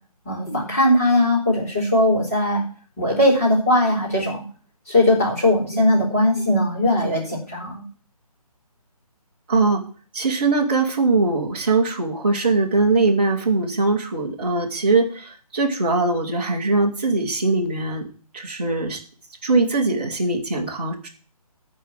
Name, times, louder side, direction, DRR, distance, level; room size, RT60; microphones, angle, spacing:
voice 1, 0.2-2.6 3.0-4.4 4.9-7.8, left 1 dB, 25° left, -5 dB, 4.1 m, -19 dB
voice 2, 9.5-9.8 10.1-18.1 18.3-19.0 19.4-21.1, right 3 dB, 15° right, -5 dB, 1.0 m, -21 dB
14.5 x 4.9 x 7.5 m, 0.41 s
hypercardioid pair, 180°, 20 cm